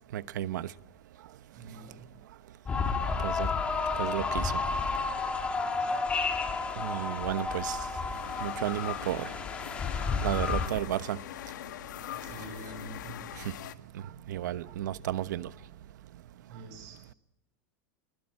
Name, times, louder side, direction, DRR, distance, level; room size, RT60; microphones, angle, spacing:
voice 1, 0.1-0.7 3.2-3.5 4.0-4.5 6.8-7.8 8.4-9.3 10.2-11.2 13.4-13.5 13.9-14.0 14.3-15.5, right 12 dB, 85° right, 1.1 m, -33 dB
voice 2, 1.5-2.1 3.1-3.5 5.8-6.0 12.1-13.2 16.5-17.0, right 2 dB, 40° right, 7.6 m, -47 dB
sound 1, 2.7-10.7, left 4 dB, 10° left, 2.1 m, -31 dB
sound 2, 2.8-4.3 6.2-13.7, left 12 dB, 90° left, 1.7 m, -42 dB
24.5 x 22.5 x 8.8 m
supercardioid pair, 175°, 10 cm